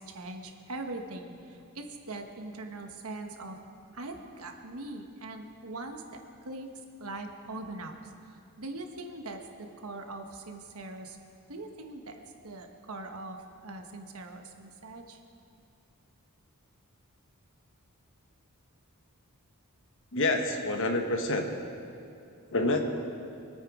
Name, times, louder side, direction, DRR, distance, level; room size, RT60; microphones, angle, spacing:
voice 1, 0.0-3.6 3.9-6.7 7.0-11.2 11.5-15.2, right 2 dB, 70° right, 4 dB, 1.3 m, -42 dB
voice 2, 20.1-21.5 22.5-22.8, left 2 dB, 60° left, 4 dB, 1.4 m, -27 dB
24.5 x 9.2 x 4.9 m, 2.6 s
head